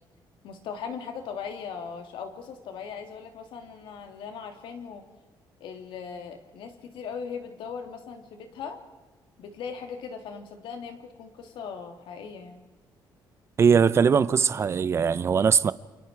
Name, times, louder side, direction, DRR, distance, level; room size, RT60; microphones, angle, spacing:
voice 1, 0.4-5.1 5.6-8.8 9.4-12.6, left 6 dB, 85° left, 3.3 m, -39 dB
voice 2, 13.6-15.7, right 6 dB, 30° right, 0.7 m, -20 dB
29.0 x 28.5 x 4.8 m
cardioid pair, 165°, 8 cm